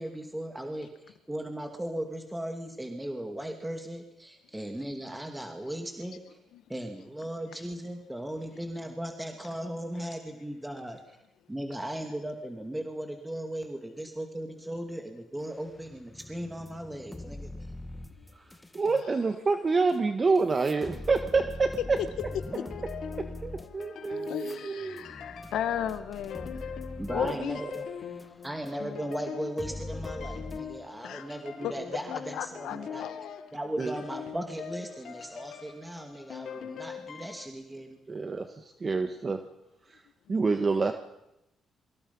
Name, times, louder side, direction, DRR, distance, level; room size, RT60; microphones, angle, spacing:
voice 1, 0.0-6.4 6.7-11.0 11.5-17.5 27.0-27.9 28.4-33.0 33.5-38.0, right 1 dB, 10° right, 4 dB, 2.5 m, -37 dB
sound 1, 15.7-19.0 19.9-20.0 20.4-28.7 29.1-29.2 29.6-30.6, left 1 dB, 10° left, 1.7 m, -42 dB
voice 2, 18.7-22.0 23.4-25.0 27.2-27.4 27.6-27.7 33.8-33.9 38.1-39.4 40.3-40.9, right 4 dB, 35° right, 7 dB, 1.6 m, -27 dB
sound 2, 22.2-37.5, left 7 dB, 65° left, 4.5 m, -42 dB
voice 3, 23.5-26.8 27.1-27.6 31.0-31.3 31.6-31.7 32.1-33.4 36.5-36.6 40.3-40.5, left 10 dB, 80° left, 10 dB, 1.9 m, -36 dB
27.5 x 24.5 x 5.6 m, 0.88 s
cardioid pair, 90°, 0 cm